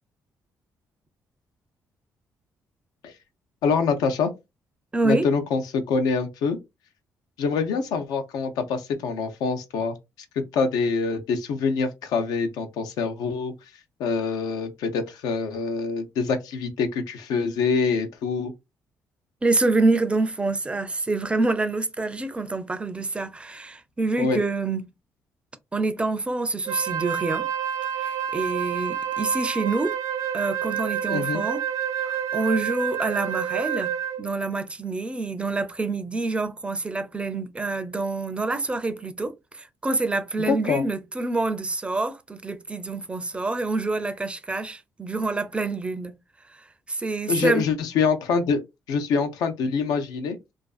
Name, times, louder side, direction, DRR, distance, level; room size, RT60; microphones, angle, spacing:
voice 1, 3.6-4.3 5.0-6.6 7.4-10.0 10.4-13.5 14.0-18.5 24.2-24.4 31.1-31.4 40.5-40.8 47.3-48.6 48.9-50.4, left 5 dB, 90° left, 0.5 m, -25 dB
voice 2, 4.9-5.3 19.4-24.8 25.7-27.5 28.0-30.0 30.3-31.6 32.0-33.9 34.2-46.1 46.5-47.7, right 3 dB, 15° right, 0.4 m, -27 dB
Wind instrument woodwind instrument, 26.7-34.3, right 9 dB, 80° right, 0.6 m, -28 dB
2.5 x 2.3 x 2.3 m
cardioid pair, 95°, 6 cm